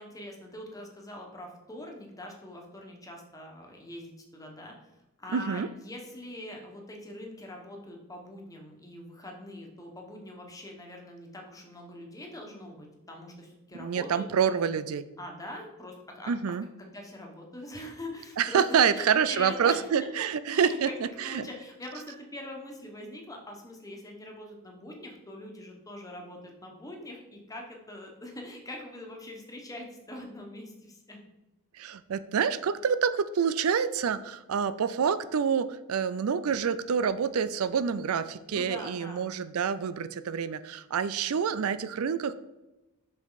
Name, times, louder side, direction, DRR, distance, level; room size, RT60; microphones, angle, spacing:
voice 1, 0.0-4.7 5.2-14.7 15.2-16.3 16.8-20.1 20.5-20.9 21.2-31.2 38.5-39.3, left 1 dB, 15° left, 1 dB, 1.5 m, -43 dB
voice 2, 5.3-5.7 13.8-15.1 16.3-16.7 18.4-20.9 21.2-21.5 31.7-42.3, right 7 dB, 70° right, 14 dB, 0.4 m, -27 dB
7.5 x 6.0 x 4.1 m, 1.0 s
head